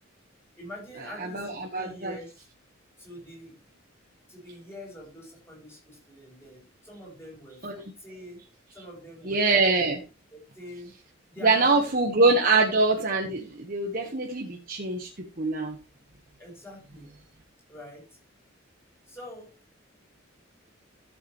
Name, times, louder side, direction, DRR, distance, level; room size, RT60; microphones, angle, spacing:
voice 1, 0.6-2.4 3.0-3.8 4.3-8.4 8.7-9.6 10.3-10.9 11.3-11.9 12.3-12.5 16.4-17.1 17.7-18.2 19.1-19.5, equal, 10° left, -3 dB, 7.7 m, -45 dB
voice 2, 1.2-2.1 7.6-7.8 9.3-10.0 11.4-15.1 15.4-15.8, right 3 dB, 45° right, 1 dB, 1.4 m, -24 dB
14.0 x 7.8 x 3.2 m, 0.30 s
head